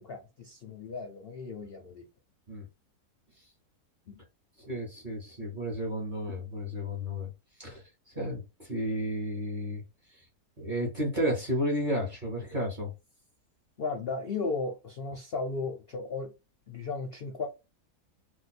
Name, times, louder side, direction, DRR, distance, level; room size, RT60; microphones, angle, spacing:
voice 1, 0.0-2.0 4.1-4.2 13.8-16.3 16.7-17.5, left 4 dB, 60° left, 0.6 m, -35 dB
voice 2, 4.7-7.3 7.6-8.4 8.7-9.8 10.6-12.9, equal, 40° right, 0.8 m, -32 dB
2.6 x 2.2 x 4.1 m
omnidirectional pair, 1.7 m